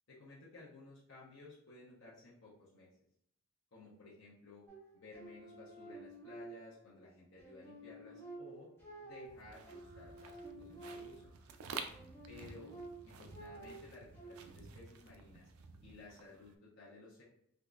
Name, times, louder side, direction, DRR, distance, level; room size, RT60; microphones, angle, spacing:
voice 1, 0.1-2.9 3.7-4.6 4.9-8.7 9.0-11.3 12.3-12.7 13.0-15.5 15.8-17.2, left 2 dB, 60° left, -7 dB, 0.8 m, -56 dB
sound 1, 4.7-7.0 7.4-11.4 11.9-14.3, right 2 dB, 10° left, 0.9 m, -52 dB
sound 2, 9.3-16.5, right 5 dB, 75° right, 0.4 m, -51 dB
3.6 x 2.9 x 2.3 m, 0.71 s
head